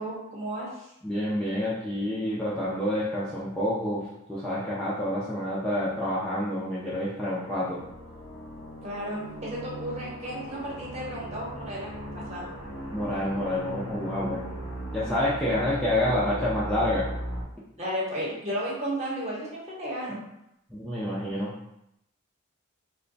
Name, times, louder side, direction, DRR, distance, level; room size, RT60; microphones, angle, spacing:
voice 1, 0.0-0.9 8.8-12.5 17.8-20.2, equal, 30° right, -5 dB, 1.0 m, -33 dB
voice 2, 1.0-7.8 12.9-14.4 14.9-17.1 20.7-21.5, left 1 dB, 5° left, -8 dB, 0.5 m, -28 dB
sound 1, 7.7-17.4, right 1 dB, 75° left, 0.9 m, -38 dB
3.0 x 2.2 x 3.9 m, 0.80 s
head